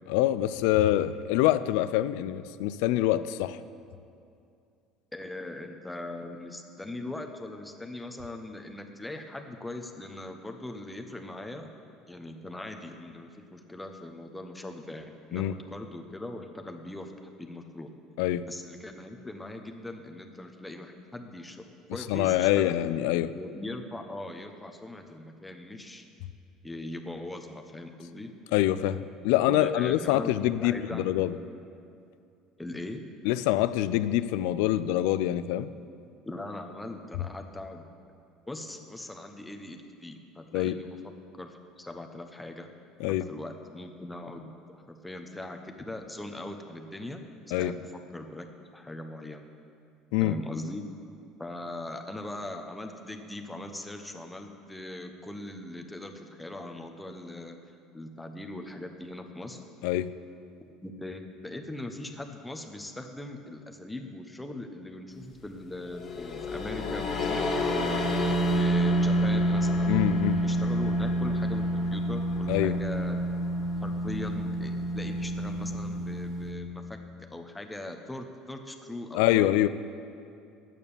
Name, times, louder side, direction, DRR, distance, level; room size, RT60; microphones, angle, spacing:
voice 1, 0.1-3.6 15.3-15.5 18.2-18.5 22.1-23.3 28.5-31.3 33.2-35.7 40.5-40.7 43.0-43.2 47.5-47.7 50.1-50.4 59.8-60.1 69.9-70.4 72.5-72.8 79.1-79.7, left 14 dB, 85° left, 14 dB, 0.4 m, -25 dB
voice 2, 5.1-11.7 12.1-17.9 18.5-21.6 21.9-22.7 23.3-26.0 26.6-28.3 29.5-30.3 30.6-31.2 32.6-33.0 36.3-37.8 38.5-41.0 41.3-42.7 43.1-47.2 47.5-48.5 48.7-49.5 50.2-50.9 51.4-59.6 60.8-68.1 68.5-70.1 70.4-73.2 73.8-77.0 77.3-79.7, left 1 dB, 10° left, 4 dB, 0.9 m, -40 dB
sound 1, 65.8-76.5, equal, 40° left, 1.8 m, -28 dB
11.0 x 8.9 x 6.9 m, 2.4 s
cardioid pair, 125°, 0 cm